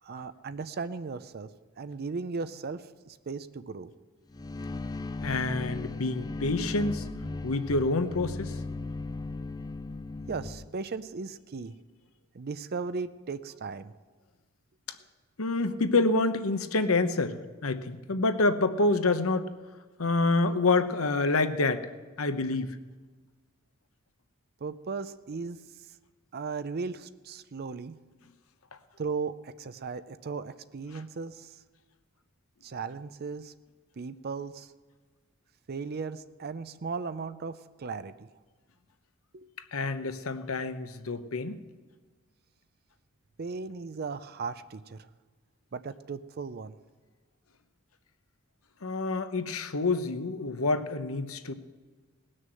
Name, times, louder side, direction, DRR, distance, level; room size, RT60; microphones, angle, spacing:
voice 1, 0.0-1.5 1.8-3.9 10.3-11.8 12.3-13.9 24.6-25.6 26.3-28.0 29.0-31.6 32.6-33.5 34.0-34.7 35.7-38.3 39.3-39.5 43.4-45.1 45.7-46.8, right 4 dB, 45° right, 13 dB, 0.5 m, -37 dB
sound 1, 4.3-10.7, left 2 dB, 20° left, 0.5 m, -37 dB
voice 2, 5.2-7.0 7.4-8.5 14.9-15.0 15.4-19.5 20.0-21.9 22.2-22.8 39.7-41.6 48.8-51.5, left 3 dB, 75° left, 10 dB, 1.0 m, -27 dB
19.5 x 6.5 x 7.7 m, 1.4 s
head